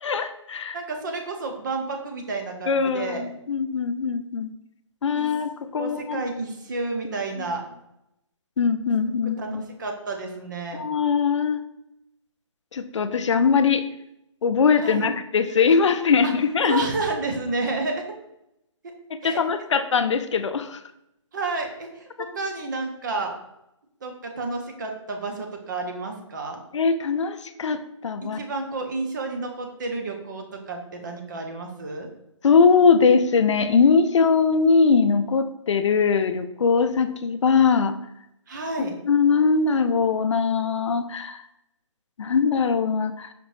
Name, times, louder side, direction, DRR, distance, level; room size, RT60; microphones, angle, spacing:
voice 1, 0.0-0.8 2.7-4.5 5.0-6.2 7.4-7.5 8.6-9.6 10.7-11.6 12.7-13.8 14.4-16.8 19.2-20.8 26.7-28.4 32.4-37.9 38.8-41.4 42.2-43.3, left 5 dB, 65° left, 10 dB, 0.4 m, -21 dB
voice 2, 0.7-3.3 5.1-5.3 5.8-7.6 9.4-10.9 14.8-15.1 16.2-16.3 16.7-18.0 19.2-19.4 21.3-23.3 24.0-26.6 28.2-32.1 38.5-39.0, right 3 dB, 40° right, 3 dB, 0.6 m, -30 dB
5.1 x 2.6 x 3.1 m, 0.83 s
hypercardioid pair, 160°, 16 cm